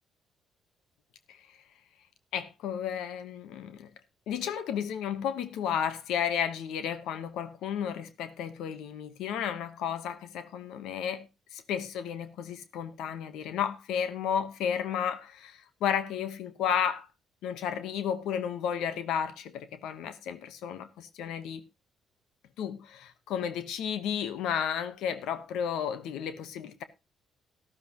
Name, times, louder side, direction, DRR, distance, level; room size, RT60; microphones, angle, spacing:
voice 1, 2.3-3.9 4.3-11.3 11.5-17.1 17.4-21.6 22.6-26.8, left 8 dB, 90° left, 1.1 m, -33 dB
13.0 x 12.5 x 3.0 m
cardioid pair, 90°, 0 cm